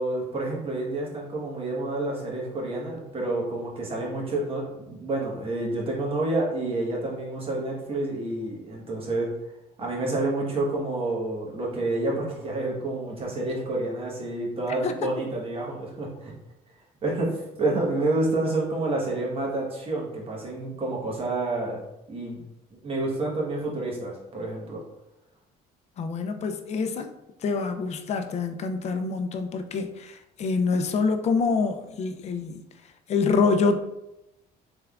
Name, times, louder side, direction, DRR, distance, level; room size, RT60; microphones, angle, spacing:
voice 1, 0.0-9.3 9.8-16.3 17.0-22.4 22.8-24.8, right 2 dB, 35° right, -2 dB, 1.1 m, -29 dB
voice 2, 26.0-27.1 27.4-32.6 33.1-33.8, left 4 dB, 40° left, 6 dB, 0.4 m, -26 dB
3.4 x 3.4 x 2.3 m, 0.87 s
cardioid pair, 110°, 17 cm